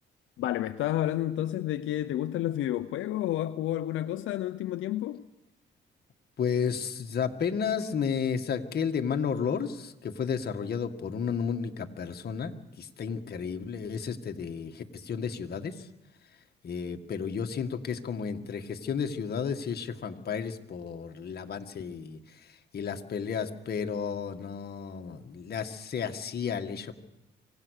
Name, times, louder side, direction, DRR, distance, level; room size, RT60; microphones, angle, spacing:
voice 1, 0.4-5.2, left 13 dB, 80° left, 10 dB, 0.7 m, -30 dB
voice 2, 6.4-15.9 16.6-26.9, left 6 dB, 55° left, 5 dB, 1.9 m, -32 dB
25.5 x 17.5 x 6.6 m, 0.95 s
cardioid pair, 90°, 20 cm